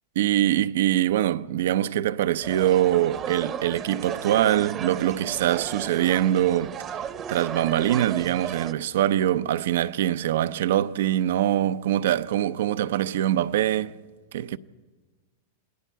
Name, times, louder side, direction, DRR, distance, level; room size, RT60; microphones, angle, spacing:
voice 1, 0.2-6.7 7.3-14.0 14.3-14.6, right 12 dB, 75° right, 0.6 m, -23 dB
sound 1, 2.4-8.7, right 8 dB, 30° right, 0.9 m, -35 dB
28.0 x 20.0 x 4.7 m
hypercardioid pair, 125°, 0 cm